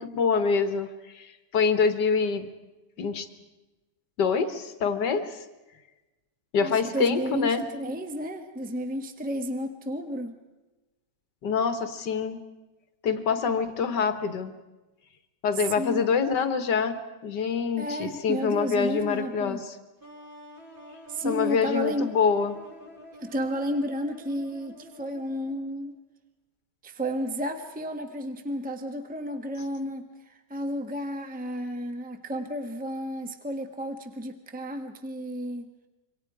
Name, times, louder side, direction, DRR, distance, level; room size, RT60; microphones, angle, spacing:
voice 1, 0.0-2.5 3.0-3.3 4.2-5.5 6.5-7.6 11.4-12.4 13.0-14.5 15.4-19.8 21.2-22.6, left 5 dB, 90° left, 9 dB, 2.1 m, -26 dB
voice 2, 6.6-10.3 15.8-16.0 17.8-19.6 21.1-22.1 23.2-25.9 26.8-35.7, equal, 5° right, 6 dB, 1.3 m, -32 dB
sound 1, 20.0-25.8, left 1 dB, 30° right, 5.2 m, -48 dB
27.5 x 24.0 x 4.9 m, 1.1 s
omnidirectional pair, 1.8 m